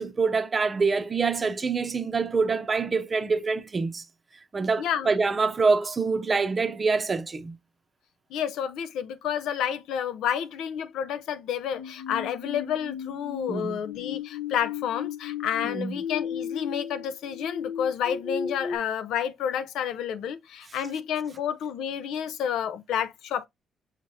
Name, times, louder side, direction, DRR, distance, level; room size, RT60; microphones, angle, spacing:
voice 1, 0.0-4.0 4.5-7.5 13.5-13.8 15.6-15.9, right 4 dB, 30° right, 0.6 m, -25 dB
voice 2, 4.8-5.1 8.3-23.5, left 9 dB, 90° left, 0.6 m, -30 dB
sound 1, 11.7-18.8, left 7 dB, 70° left, 1.1 m, -35 dB
6.5 x 3.1 x 2.6 m
cardioid pair, 115°, 0 cm